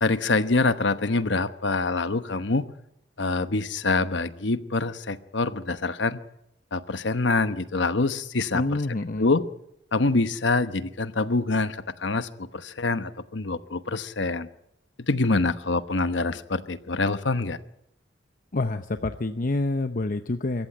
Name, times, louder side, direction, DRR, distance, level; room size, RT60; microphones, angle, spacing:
voice 1, 0.0-2.7 3.2-6.2 6.7-8.8 9.2-9.4 9.9-14.5 15.1-17.6, left 3 dB, 70° left, 12 dB, 1.1 m, -25 dB
voice 2, 8.5-9.4 18.5-20.7, left 2 dB, 50° left, 9 dB, 0.8 m, -27 dB
25.0 x 14.5 x 8.9 m, 0.80 s
head